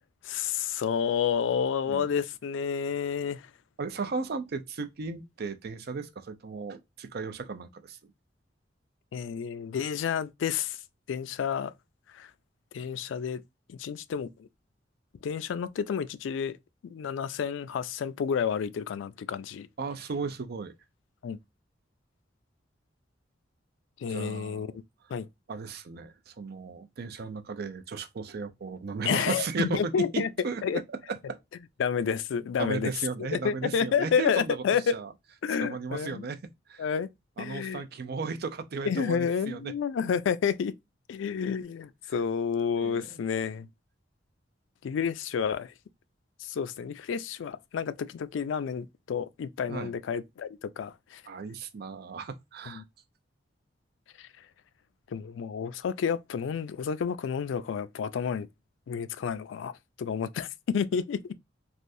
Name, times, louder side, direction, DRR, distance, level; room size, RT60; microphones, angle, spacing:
voice 1, 0.2-3.5 9.1-10.8 11.1-11.7 12.1-12.3 12.7-13.4 13.7-14.5 15.2-16.6 16.8-19.7 21.2-21.4 24.0-24.7 25.1-25.3 29.1-30.3 30.6-30.8 31.8-32.9 33.2-35.0 35.4-36.2 36.8-37.1 37.4-37.8 38.8-40.8 41.1-43.7 44.8-45.7 46.4-51.2 52.7-52.8 54.2-54.3 55.1-58.5 58.9-61.3, left 7 dB, 85° left, 0.3 m, -30 dB
voice 2, 3.8-8.1 19.8-20.7 24.1-24.8 25.5-31.4 32.6-34.6 34.9-35.1 35.6-36.4 36.7-36.9 37.4-39.7 42.8-43.2 49.7-49.9 51.3-52.8, right 4 dB, 55° right, 0.5 m, -35 dB
3.3 x 2.5 x 2.6 m
head